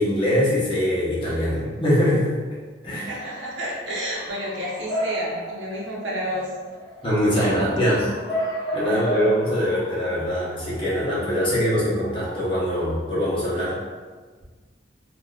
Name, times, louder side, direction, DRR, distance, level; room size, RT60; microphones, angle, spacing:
voice 1, 0.0-2.3 2.8-3.1 7.0-8.1 8.7-13.8, equal, 25° left, -8 dB, 1.0 m, -22 dB
voice 2, 3.0-6.5 7.5-7.6 8.9-9.1, equal, 75° right, -4 dB, 0.8 m, -31 dB
Bark / Motor vehicle (road) / Siren, 4.2-12.9, equal, ahead, 1.1 m, -34 dB
3.5 x 2.7 x 2.4 m, 1.4 s
head